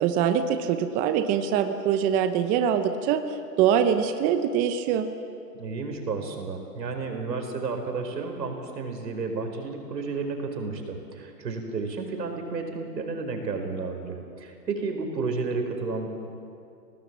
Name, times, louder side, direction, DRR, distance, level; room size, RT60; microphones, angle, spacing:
voice 1, 0.0-3.2 3.6-5.1, right 8 dB, 15° right, 8 dB, 0.7 m, -23 dB
voice 2, 5.6-16.1, right 4 dB, 85° right, 4 dB, 4.8 m, -32 dB
28.5 x 18.5 x 7.4 m, 2.5 s
hypercardioid pair, 140°, 49 cm